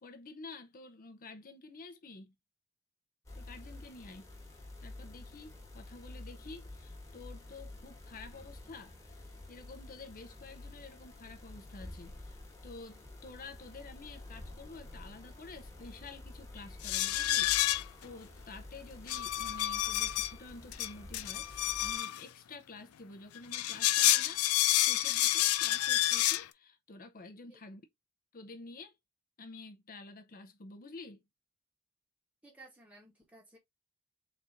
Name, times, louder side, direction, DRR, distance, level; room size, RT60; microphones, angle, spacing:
voice 1, 0.0-2.3 3.3-4.3 4.8-12.4 12.6-27.8 28.3-28.9 29.4-31.2, left 3 dB, 40° left, 0.7 m, -50 dB
sound 1, 3.3-22.0, left 2 dB, 15° left, 1.5 m, -50 dB
sound 2, 16.8-18.0 19.1-20.3 20.7-22.2 23.4-26.4, left 14 dB, 80° left, 0.4 m, -29 dB
voice 2, 32.4-33.6, right 2 dB, 5° right, 1.0 m, -56 dB
4.2 x 2.6 x 4.3 m
head